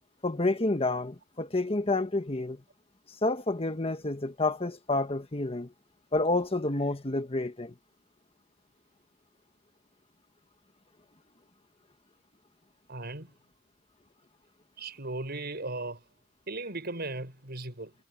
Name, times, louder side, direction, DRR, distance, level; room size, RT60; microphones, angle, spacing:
voice 1, 0.2-2.6 3.2-5.7 6.1-7.7, left 2 dB, 30° left, 1.5 m, -29 dB
voice 2, 12.9-13.3 14.8-16.0 16.5-17.9, right 2 dB, 55° right, 7.2 m, -37 dB
head